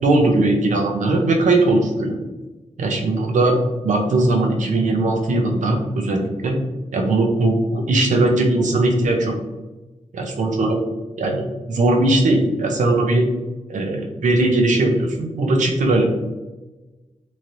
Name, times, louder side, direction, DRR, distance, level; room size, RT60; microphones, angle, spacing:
voice 1, 0.0-2.2 2.8-3.6 3.8-6.6 6.9-9.4 10.1-10.8 11.2-13.3 13.7-16.0, right 2 dB, 80° right, 2 dB, 0.6 m, -19 dB
3.1 x 2.9 x 2.5 m, 1.1 s
wide cardioid pair, 170°, 13 cm